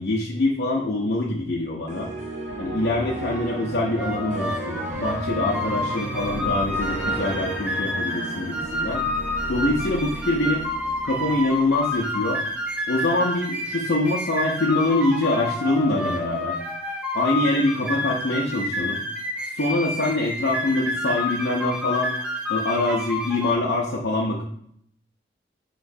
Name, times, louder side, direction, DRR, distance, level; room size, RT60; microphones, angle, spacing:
voice 1, 0.0-2.1 2.6-9.0 9.5-10.7 11.0-12.4 12.9-16.6 17.1-19.0 19.5-22.1 22.5-24.4, left 2 dB, 75° left, -2 dB, 0.5 m, -24 dB
sound 1, 1.9-11.9, right 2 dB, 40° right, 0.7 m, -34 dB
sound 2, 4.0-23.5, left 1 dB, 5° right, 0.5 m, -29 dB
5.9 x 3.0 x 2.6 m, 0.69 s
head